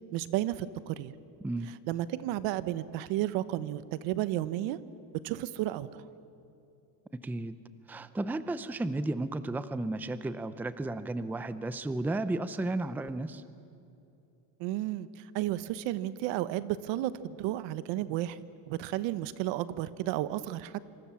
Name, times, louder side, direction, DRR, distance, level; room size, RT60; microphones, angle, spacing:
voice 1, 0.1-1.1 1.9-4.8 5.2-6.0 14.6-18.4 18.7-20.8, right 14 dB, 70° right, 15 dB, 1.2 m, -32 dB
voice 2, 7.2-7.6 7.9-13.4, right 2 dB, 5° right, 13 dB, 0.6 m, -33 dB
27.0 x 26.5 x 7.3 m, 2.7 s
cardioid pair, 145°, 46 cm